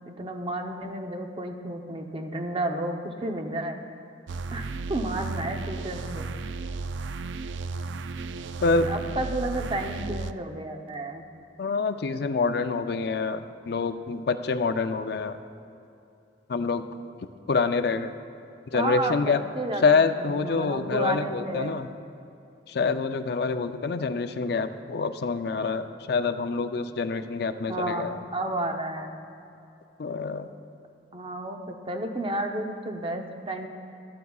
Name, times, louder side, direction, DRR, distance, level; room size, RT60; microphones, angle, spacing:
voice 1, 0.1-3.8 4.5-6.3 8.8-11.2 18.7-21.9 27.7-29.2 31.1-33.7, right 1 dB, 30° right, 4 dB, 0.7 m, -32 dB
sound 1, 4.3-10.3, right 3 dB, 80° right, 0.3 m, -34 dB
voice 2, 8.6-8.9 11.6-15.4 16.5-16.8 17.5-18.1 18.7-19.4 19.8-21.9 22.7-28.2 30.0-30.5, left 4 dB, 60° left, 9 dB, 0.4 m, -26 dB
14.5 x 12.0 x 2.4 m, 2.7 s
head